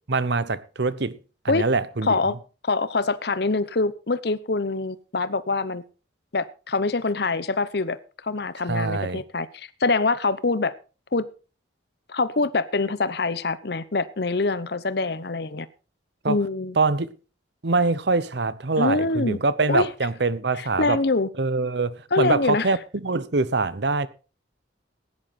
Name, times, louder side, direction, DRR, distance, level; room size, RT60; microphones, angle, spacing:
voice 1, 0.1-1.2 1.4-2.1 8.7-9.2 16.2-16.4 16.8-17.1 17.6-21.0 21.4-24.1, right 3 dB, 60° right, 0.8 m, -24 dB
voice 2, 2.0-2.3 2.6-5.8 6.3-8.0 8.2-10.7 11.1-11.3 12.1-15.7 16.3-16.8 18.8-19.4 19.7-19.9 20.6-21.3 22.1-22.7, left 3 dB, 55° left, 0.8 m, -24 dB
16.0 x 10.5 x 4.2 m
head